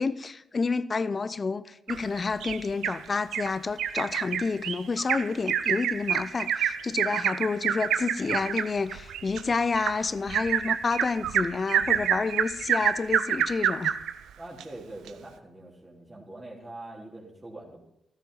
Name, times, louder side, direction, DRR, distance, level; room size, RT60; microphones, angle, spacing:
voice 1, 0.0-14.0, left 4 dB, 45° left, 0.6 m, -29 dB
Bird vocalization bird call bird song, 1.9-3.0 3.3-3.5 3.8-14.1 14.6-14.7 15.1-15.2, right 9 dB, 80° right, 0.6 m, -27 dB
voice 2, 14.4-17.8, right 2 dB, 25° right, 3.5 m, -43 dB
13.5 x 12.0 x 4.1 m
hypercardioid pair, 45°, 0 cm